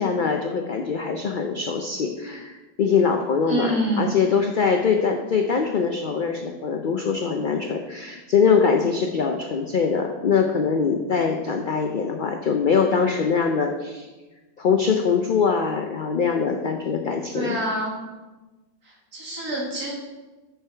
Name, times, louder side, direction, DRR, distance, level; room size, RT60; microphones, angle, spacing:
voice 1, 0.0-14.1 14.6-17.6, left 5 dB, 80° left, 4 dB, 0.4 m, -23 dB
voice 2, 3.5-4.1 17.3-18.0 19.1-19.9, right 1 dB, 85° right, -2 dB, 2.3 m, -26 dB
6.7 x 6.1 x 4.4 m, 1.2 s
omnidirectional pair, 1.5 m